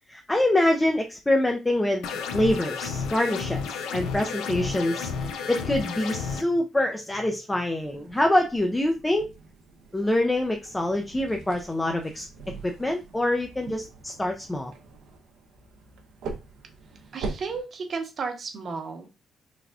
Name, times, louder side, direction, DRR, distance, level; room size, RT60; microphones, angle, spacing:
voice 1, 0.1-2.1 2.3-3.6 3.9-9.3 9.9-12.3 12.6-14.7, left 1 dB, 15° left, 4 dB, 0.4 m, -25 dB
sound 1, 2.0-6.4, left 5 dB, 85° left, 0.4 m, -32 dB
sound 2, 7.8-17.6, right 4 dB, 80° right, 0.6 m, -42 dB
voice 2, 17.1-19.2, right 4 dB, 50° right, 4 dB, 0.8 m, -33 dB
3.3 x 2.4 x 2.3 m, 0.26 s
cardioid pair, 90°, 0 cm